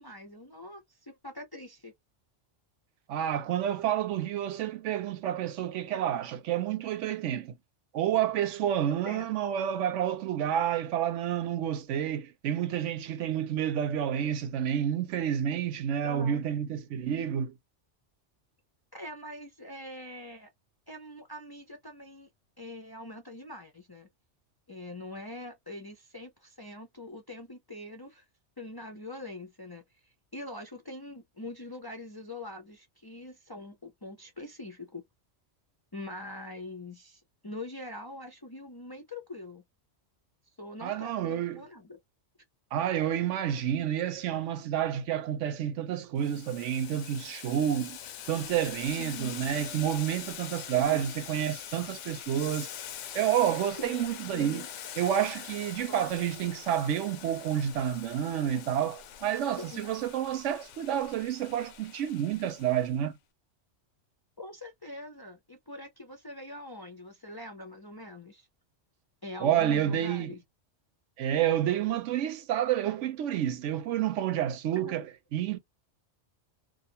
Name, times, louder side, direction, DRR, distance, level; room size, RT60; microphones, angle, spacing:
voice 1, 0.0-1.9 9.1-9.3 16.0-16.4 18.9-20.5 20.9-22.3 22.6-24.1 24.7-28.3 28.6-35.0 35.9-39.6 40.6-42.0 49.0-49.4 50.7-51.1 53.8-54.7 55.8-56.1 59.6-59.9 64.4-68.5 69.2-70.4 74.7-75.0, left 1 dB, 30° left, 0.4 m, -43 dB
voice 2, 3.1-7.5 7.9-17.5 40.8-41.6 42.7-48.0 48.3-52.7 53.1-54.6 55.0-63.2 69.4-70.3 71.2-75.1 75.3-75.6, right 10 dB, 85° right, 0.9 m, -29 dB
Boiling, 46.2-63.0, left 9 dB, 85° left, 0.9 m, -44 dB
2.5 x 2.3 x 2.7 m
omnidirectional pair, 1.2 m